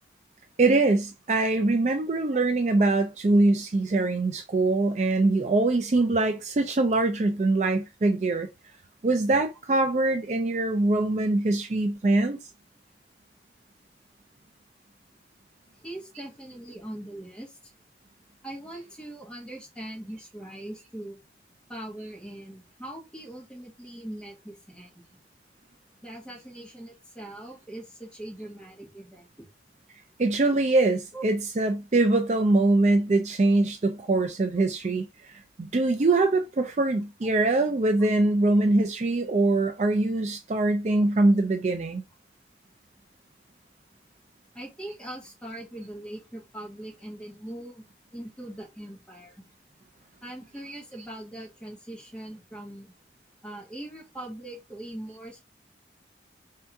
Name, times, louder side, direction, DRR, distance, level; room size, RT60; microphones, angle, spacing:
voice 1, 0.6-8.5 9.0-12.4 30.2-42.0, right 2 dB, 40° right, 0.4 m, -23 dB
voice 2, 15.8-17.7 18.4-21.2 21.7-25.0 26.0-29.3 31.1-31.2 39.8-39.9 44.5-47.8 48.1-49.4 50.2-52.9 53.4-55.4, right 1 dB, 5° left, 1.4 m, -41 dB
3.4 x 2.8 x 4.5 m
head